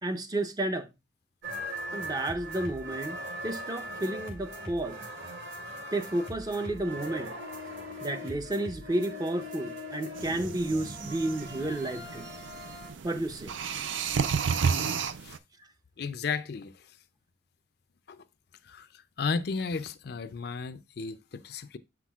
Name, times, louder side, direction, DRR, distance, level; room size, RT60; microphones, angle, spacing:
voice 1, 0.0-0.9 1.9-3.2 3.4-5.0 5.9-7.4 8.0-12.3 13.0-13.5, right 1 dB, 20° right, 0.5 m, -31 dB
sound 1, 1.4-12.9, equal, 65° right, 2.4 m, -40 dB
sound 2, 10.2-15.4, right 6 dB, 90° right, 0.5 m, -32 dB
voice 2, 16.0-16.7 18.1-18.2 18.6-18.9 19.2-21.8, left 5 dB, 55° left, 0.4 m, -33 dB
7.6 x 5.9 x 2.4 m
head